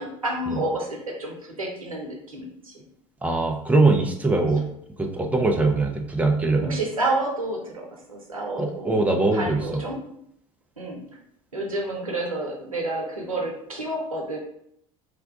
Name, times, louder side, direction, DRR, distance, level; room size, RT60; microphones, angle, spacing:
voice 1, 0.0-2.8 6.6-8.9 9.3-10.0 10.8-11.0 11.5-14.4, right 2 dB, 85° right, -1 dB, 0.7 m, -30 dB
voice 2, 3.2-4.7 5.0-6.8 8.6-9.8, right 3 dB, 10° right, 2 dB, 0.6 m, -22 dB
3.7 x 2.3 x 3.6 m, 0.72 s
figure-of-eight pair, 65°, 17 cm